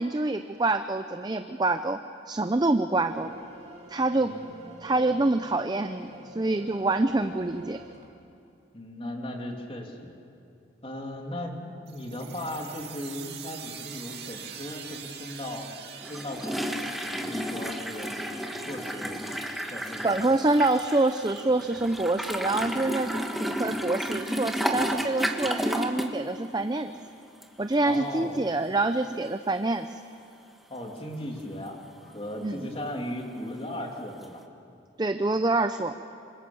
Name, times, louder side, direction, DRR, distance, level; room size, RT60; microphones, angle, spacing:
voice 1, 0.0-2.0 2.3-3.3 3.9-4.3 4.8-7.8 20.0-23.1 23.4-26.9 27.6-30.0 32.4-32.7 35.0-35.9, right 2 dB, 25° right, 9 dB, 0.6 m, -26 dB
sound 1, 3.1-8.1, right 1 dB, 40° right, 2.6 m, -46 dB
voice 2, 4.2-4.5 8.7-10.1 10.8-15.7 16.0-18.1 18.6-19.2 19.7-20.4 27.8-28.4 30.7-34.4, left 1 dB, 30° left, 2 dB, 2.7 m, -37 dB
sound 2, 11.9-23.3, right 7 dB, 65° right, 2.4 m, -46 dB
Toilet Flush Close, 16.0-26.2 26.4-26.7 27.4-27.5 27.9-28.0 34.2-34.3, equal, ahead, 1.4 m, -32 dB
26.5 x 25.0 x 7.1 m, 2.6 s
head